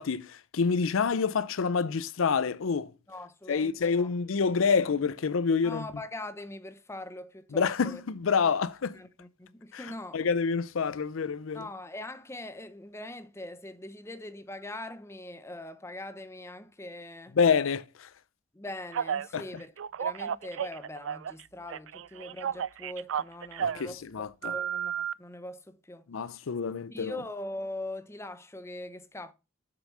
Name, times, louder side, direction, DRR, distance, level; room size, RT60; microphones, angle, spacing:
voice 1, 0.0-2.9 3.5-5.9 7.5-9.0 9.7-11.7 17.4-18.1 19.3-19.4 23.6-24.5 26.1-27.2, left 5 dB, 85° left, 0.5 m, -27 dB
voice 2, 3.1-4.1 5.6-8.0 8.4-8.6 8.9-10.2 11.5-17.4 18.5-19.7 20.0-26.1 26.7-29.3, left 1 dB, 15° left, 0.7 m, -42 dB
Telephone, 18.9-19.3 19.8-21.4 21.7-23.9 24.4-25.1, right 8 dB, 75° right, 0.4 m, -32 dB
7.5 x 6.8 x 5.4 m
head